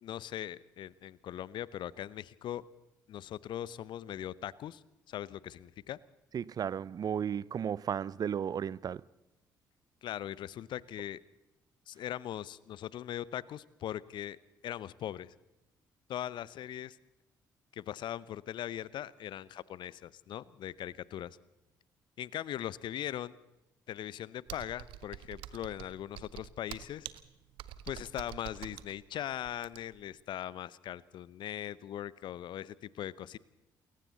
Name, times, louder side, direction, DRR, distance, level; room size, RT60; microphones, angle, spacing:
voice 1, 0.0-2.6 3.1-6.0 10.0-11.2 11.9-14.4 14.6-15.3 16.1-17.0 17.7-21.4 22.2-23.4 23.9-27.1 27.8-33.4, left 11 dB, 50° left, 0.8 m, -40 dB
voice 2, 6.3-9.0, right 8 dB, 40° right, 0.6 m, -34 dB
Computer keyboard, 24.5-30.1, right 13 dB, 60° right, 1.0 m, -46 dB
28.5 x 22.5 x 4.1 m
figure-of-eight pair, 45°, 10 cm